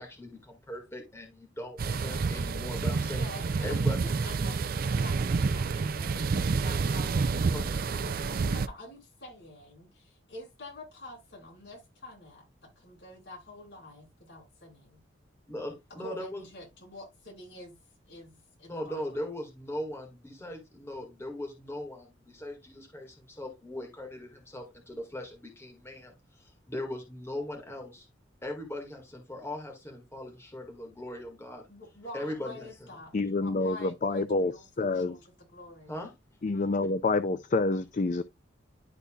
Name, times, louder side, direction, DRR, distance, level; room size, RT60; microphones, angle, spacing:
voice 1, 0.0-3.3 3.6-4.0 7.5-7.8 15.5-16.5 18.7-28.1 28.4-31.7 32.1-32.9 35.9-36.1, left 1 dB, 15° left, 1.8 m, -39 dB
sound 1, 1.8-8.7, right 4 dB, 50° right, 0.4 m, -29 dB
voice 2, 3.1-12.4 12.8-15.0 16.0-17.8 18.1-19.2 31.7-33.1 33.4-36.0, left 1 dB, 60° left, 4.7 m, -47 dB
voice 3, 33.1-34.5 34.8-35.2 36.4-38.2, left 3 dB, 40° left, 0.4 m, -27 dB
11.5 x 4.1 x 2.3 m
head